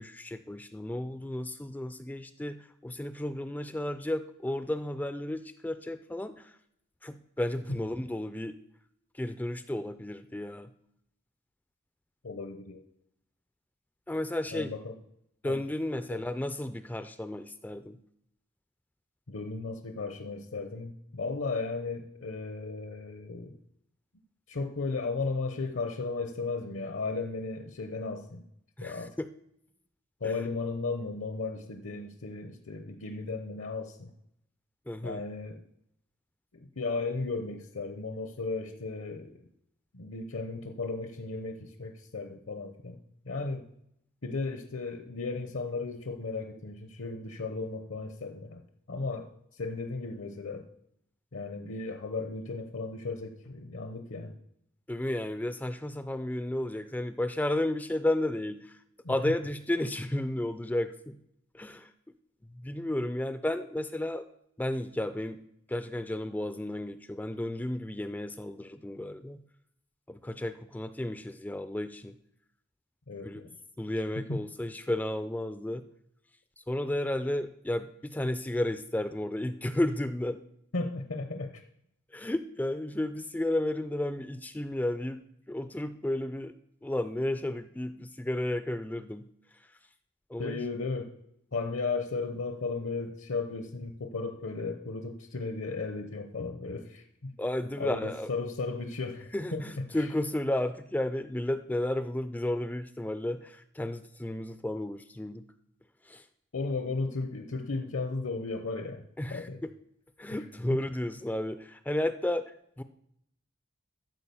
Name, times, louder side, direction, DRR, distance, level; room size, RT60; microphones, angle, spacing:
voice 1, 0.0-6.5 7.0-8.6 9.1-10.7 14.1-14.7 15.4-18.0 28.8-29.3 30.2-30.4 34.9-35.2 54.9-58.8 59.1-61.2 61.5-61.9 62.5-64.3 64.6-65.4 65.7-69.4 70.1-72.2 73.2-73.4 73.8-75.8 76.6-80.4 82.1-85.2 85.5-86.5 86.8-89.3 90.3-90.6 97.4-98.3 99.3-105.4 106.1-106.2 109.2-109.7 110.2-112.8, left 1 dB, 10° left, 11 dB, 0.3 m, -33 dB
voice 2, 12.2-12.8 14.5-14.9 15.4-15.6 16.1-16.2 19.3-23.6 24.5-28.4 28.8-29.2 30.2-34.1 35.0-35.6 36.8-39.4 39.9-43.0 43.3-43.7 44.2-48.6 48.9-49.3 49.6-50.7 51.3-54.3 59.0-59.1 73.1-73.5 74.3-74.4 80.7-81.5 90.4-91.1 91.5-97.3 97.8-99.8 106.5-109.6 110.3-110.4, left 3 dB, 65° left, 5 dB, 0.8 m, -35 dB
13.5 x 4.9 x 6.9 m, 0.75 s
head